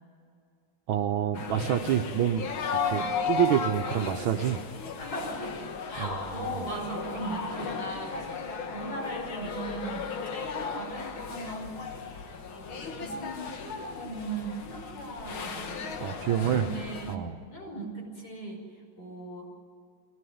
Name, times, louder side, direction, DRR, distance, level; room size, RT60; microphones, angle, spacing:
voice 1, 0.9-2.5 2.9-4.6 6.0-6.6 16.0-16.7 17.1-17.4, right 10 dB, 85° right, 6 dB, 1.7 m, -27 dB
sound 1, 1.3-17.2, left 5 dB, 90° left, 2.3 m, -35 dB
voice 2, 2.8-3.2 5.0-10.1 10.4-11.8 12.5-15.8 16.6-17.1 17.5-18.6 19.0-19.5, right 1 dB, 55° left, -1 dB, 6.2 m, -38 dB
23.0 x 17.5 x 9.4 m, 2.4 s
omnidirectional pair, 2.2 m